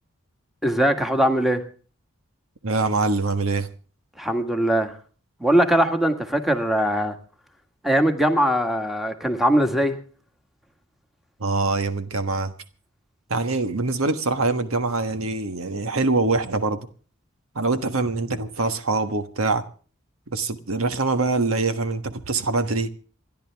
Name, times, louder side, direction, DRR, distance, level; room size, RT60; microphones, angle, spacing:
voice 1, 0.6-1.6 4.2-4.9 5.4-7.2 7.8-10.0, right 1 dB, ahead, 1.7 m, -21 dB
voice 2, 2.6-3.7 11.4-12.5 13.3-16.8 17.5-19.6 20.3-22.9, right 3 dB, 85° right, 1.4 m, -24 dB
28.0 x 11.0 x 3.5 m
head